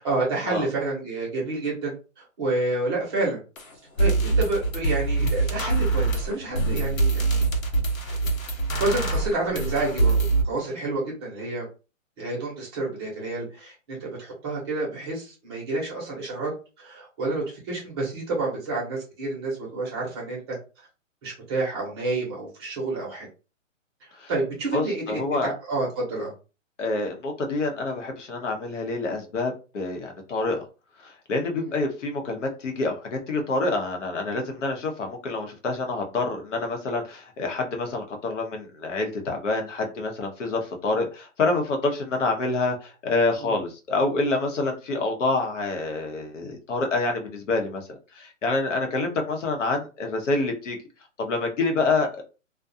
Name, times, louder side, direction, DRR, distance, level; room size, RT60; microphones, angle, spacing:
voice 1, 0.0-3.4 4.0-7.4 8.1-8.2 8.4-8.5 8.8-10.2 10.4-11.6 12.2-16.5 16.8-20.6 21.2-23.3 24.3-26.3 31.5-31.7 43.4-43.6, right 2 dB, 20° right, -4 dB, 0.8 m, -29 dB
sound 1, 3.6-3.7 4.0-10.4, right 3 dB, 90° left, 1.1 m, -24 dB
voice 2, 24.7-25.5 26.8-30.6 31.0-50.8 51.2-52.2, left 3 dB, 65° left, 3 dB, 0.9 m, -27 dB
2.4 x 2.2 x 2.6 m, 0.33 s
hypercardioid pair, 160°, 39 cm